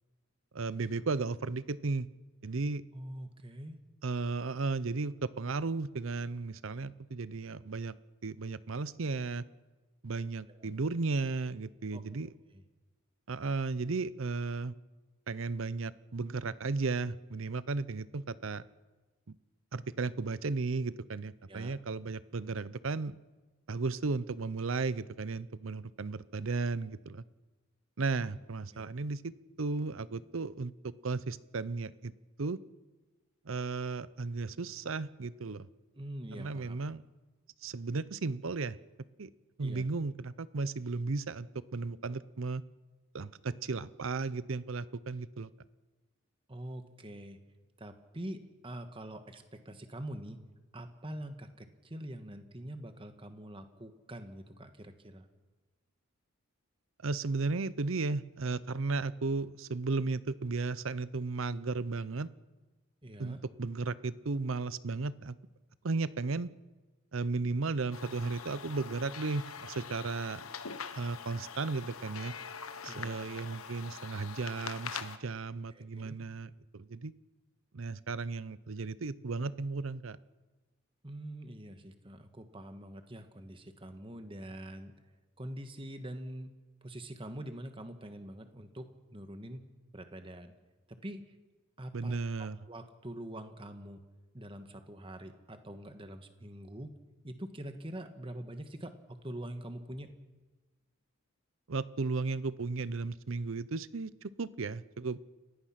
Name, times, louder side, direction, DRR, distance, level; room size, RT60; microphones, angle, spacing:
voice 1, 0.5-2.1 2.4-2.8 4.0-7.9 8.2-9.4 10.0-12.3 13.3-14.7 15.3-18.6 19.3-19.4 19.7-23.1 23.7-27.2 28.0-32.1 32.4-32.6 33.4-35.7 36.3-37.0 37.6-38.8 39.2-39.3 39.6-42.6 43.1-45.5 57.0-62.3 63.2-65.3 65.8-66.5 67.1-70.5 71.0-72.3 72.8-77.1 77.7-80.2 91.9-92.6 101.7-105.3, right 3 dB, 65° right, 17 dB, 0.7 m, -35 dB
voice 2, 2.9-3.8 10.5-10.7 11.9-12.0 12.5-12.6 21.5-21.8 28.2-28.3 28.7-28.8 35.9-36.8 39.6-39.8 46.5-47.4 47.8-50.4 50.7-55.3 63.0-63.4 72.9-73.2 75.7-76.2 81.0-84.9 85.4-86.5 86.8-89.6 89.9-90.5 90.9-91.3 91.8-94.0 94.3-97.0 97.2-100.1, right 1 dB, 25° right, 8 dB, 1.5 m, -44 dB
sound 1, 67.9-75.2, left 6 dB, 85° left, 1.2 m, -44 dB
30.0 x 16.5 x 5.9 m, 1.3 s
head